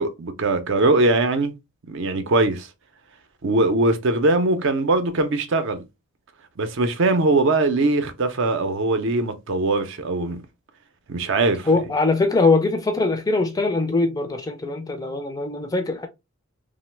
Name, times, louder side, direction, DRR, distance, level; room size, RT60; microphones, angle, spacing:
voice 1, 0.0-1.5 1.9-2.7 3.4-5.8 6.6-10.4 11.1-11.7, right 2 dB, 60° right, 0.5 m, -21 dB
voice 2, 11.7-16.1, left 3 dB, 15° left, 0.4 m, -22 dB
2.9 x 2.0 x 3.1 m
head